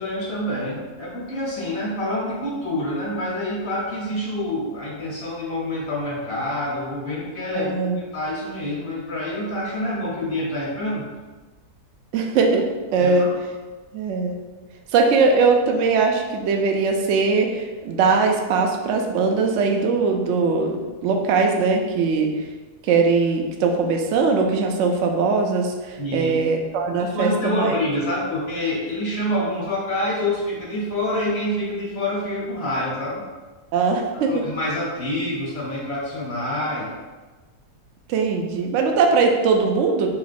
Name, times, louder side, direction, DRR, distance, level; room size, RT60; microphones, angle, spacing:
voice 1, 0.0-11.1 13.0-13.3 26.0-26.3 27.1-33.2 34.3-36.9, left 1 dB, 45° left, -5 dB, 1.1 m, -27 dB
voice 2, 7.6-8.0 12.1-13.3 13.9-14.4 14.9-22.5 22.8-27.8 33.7-34.4 38.1-40.1, right 4 dB, 70° right, 2 dB, 0.7 m, -20 dB
3.4 x 3.0 x 4.0 m, 1.3 s
omnidirectional pair, 1.7 m